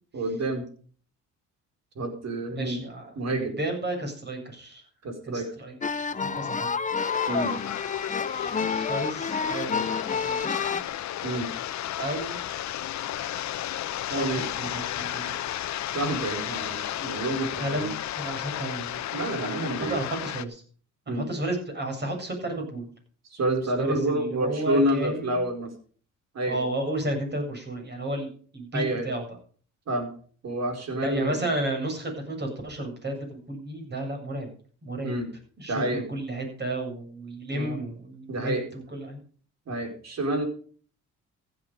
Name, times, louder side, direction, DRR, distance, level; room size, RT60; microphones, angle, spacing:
voice 1, 0.1-0.7 1.9-2.8 3.2-3.6 5.0-5.5 7.3-7.5 8.6-8.7 11.2-11.5 14.1-14.5 15.9-17.9 19.1-20.0 21.1-21.2 23.3-25.7 26.3-26.6 28.7-29.1 29.9-30.1 30.4-31.4 35.0-35.3 35.7-36.0 37.5-37.8 38.3-38.6 39.7-40.4, right 1 dB, 60° right, 4 dB, 4.9 m, -28 dB
voice 2, 2.6-4.8 5.3-6.7 8.7-10.8 12.0-12.4 14.1-14.3 14.6-15.4 17.6-19.0 19.7-20.6 21.1-22.9 23.8-25.4 26.4-29.2 31.0-34.5 34.8-35.2 35.6-39.2, right 1 dB, 35° right, 3 dB, 7.8 m, -32 dB
sound 1, 5.8-10.8, left 5 dB, 25° left, 0.8 m, -29 dB
sound 2, 7.0-20.4, left 12 dB, 65° left, 0.9 m, -33 dB
15.0 x 9.6 x 5.1 m, 0.43 s
cardioid pair, 90°, 30 cm